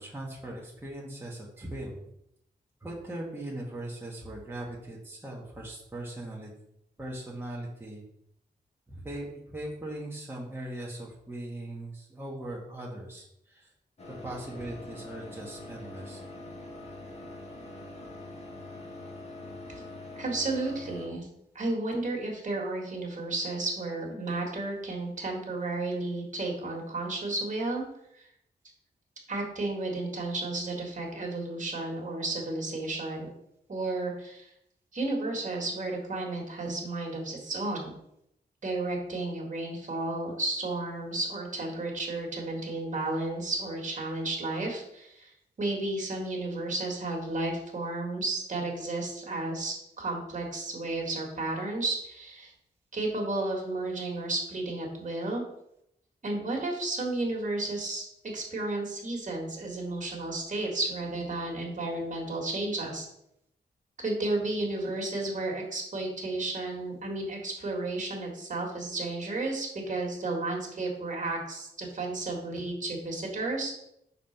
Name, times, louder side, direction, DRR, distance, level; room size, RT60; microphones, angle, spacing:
voice 1, 0.0-2.0 2.8-6.5 7.0-8.0 8.9-13.7 14.2-16.2, right 1 dB, 15° right, -4 dB, 1.3 m, -39 dB
sound 1, 14.0-21.1, left 2 dB, 40° left, 1.3 m, -44 dB
voice 2, 20.2-21.3 21.6-27.8 28.1-28.3 29.3-33.3 33.7-34.5 34.9-37.9 38.6-45.3 45.6-52.5 52.9-55.4 56.2-58.0 58.3-63.1 64.0-73.7, right 2 dB, 50° right, -1 dB, 1.8 m, -32 dB
5.5 x 4.2 x 5.8 m, 0.76 s
wide cardioid pair, 145°, 17 cm